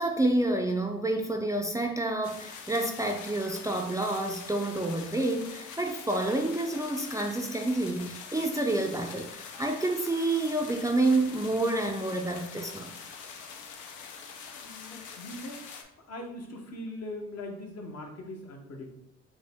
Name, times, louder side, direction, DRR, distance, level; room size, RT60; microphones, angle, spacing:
voice 1, 0.0-13.0 14.9-15.0, right 2 dB, 10° right, 2 dB, 0.4 m, -29 dB
sound 1, 2.2-15.8, left 6 dB, 80° left, 0.7 m, -44 dB
voice 2, 14.5-15.6 16.1-18.9, left 1 dB, 55° left, 2 dB, 1.0 m, -41 dB
5.3 x 2.2 x 3.5 m, 0.82 s
cardioid pair, 90°, 30 cm